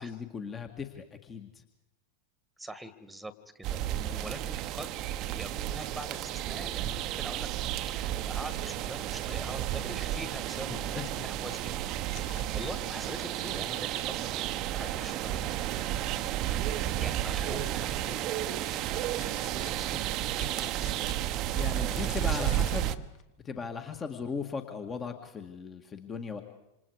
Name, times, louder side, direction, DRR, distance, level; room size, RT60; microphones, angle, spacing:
voice 1, 0.0-1.6 10.7-11.1 21.4-23.1 23.4-26.4, left 5 dB, 20° left, 6 dB, 2.0 m, -38 dB
voice 2, 2.6-4.9 5.3-11.8 12.5-14.4 14.7-15.8 16.4-20.9 21.8-22.6, right 1 dB, 5° right, 14 dB, 1.9 m, -44 dB
sound 1, 3.6-23.0, right 12 dB, 40° right, 1.1 m, -32 dB
sound 2, 12.1-15.6 17.2-23.2, left 9 dB, 40° left, 2.2 m, -53 dB
28.0 x 27.5 x 4.9 m, 0.90 s
figure-of-eight pair, 90°, 0 cm